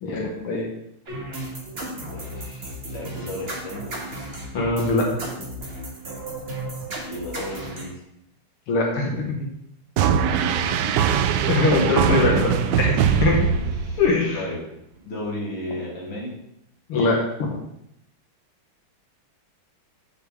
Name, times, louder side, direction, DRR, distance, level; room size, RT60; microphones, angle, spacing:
voice 1, 0.0-0.7 4.5-5.1 8.7-9.5 11.5-12.5 12.8-12.9 13.2-13.5 14.0-14.4 16.9-17.5, left 3 dB, 75° left, 0 dB, 2.1 m, -22 dB
sound 1, 1.1-7.8, right 1 dB, 30° right, 1.5 m, -34 dB
voice 2, 1.9-3.9 7.1-8.0 10.2-12.8 13.6-14.0 14.3-14.6 15.0-16.3, left 1 dB, 30° left, -4 dB, 2.1 m, -34 dB
sound 2, 10.0-14.3, right 8 dB, 80° right, 1.0 m, -21 dB
8.1 x 6.6 x 3.6 m, 0.77 s
omnidirectional pair, 2.4 m